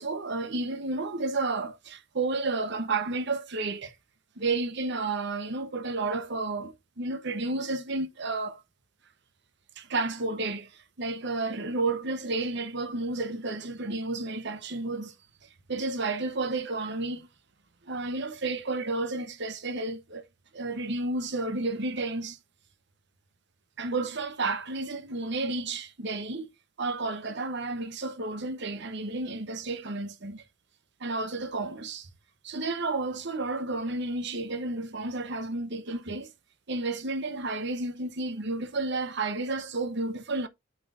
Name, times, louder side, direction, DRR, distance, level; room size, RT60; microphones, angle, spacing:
voice 1, 0.0-3.9 4.4-8.6 9.8-10.7 11.0-15.1 15.7-17.3 17.8-20.2 20.5-22.4 23.8-26.5 26.8-30.4 31.0-32.1 32.4-36.3 36.7-40.5, right 3 dB, 65° right, 1.0 m, -31 dB
8.9 x 5.9 x 2.5 m
head